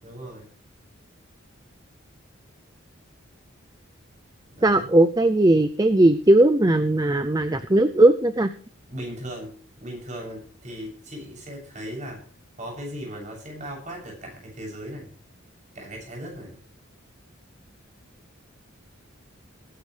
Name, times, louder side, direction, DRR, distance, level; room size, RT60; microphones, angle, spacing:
voice 1, 0.0-0.5 4.5-4.9 8.9-12.2 12.6-15.1 15.7-16.6, equal, 35° right, 0 dB, 7.7 m, -37 dB
voice 2, 4.6-8.5, right 1 dB, 20° right, 10 dB, 0.5 m, -18 dB
20.5 x 11.5 x 3.4 m, 0.43 s
head